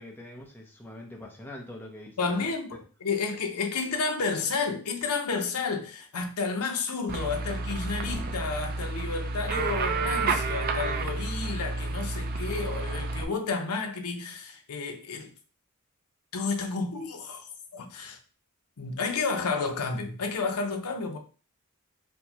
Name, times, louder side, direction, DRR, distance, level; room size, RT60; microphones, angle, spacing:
voice 1, 0.0-2.2, left 1 dB, 10° left, 0.6 m, -43 dB
voice 2, 2.2-15.3 16.3-17.4 17.7-18.2 18.8-21.2, left 4 dB, 80° left, 0.7 m, -31 dB
sound 1, 7.1-13.2, right 3 dB, 40° right, 0.3 m, -30 dB
4.4 x 2.1 x 2.8 m
head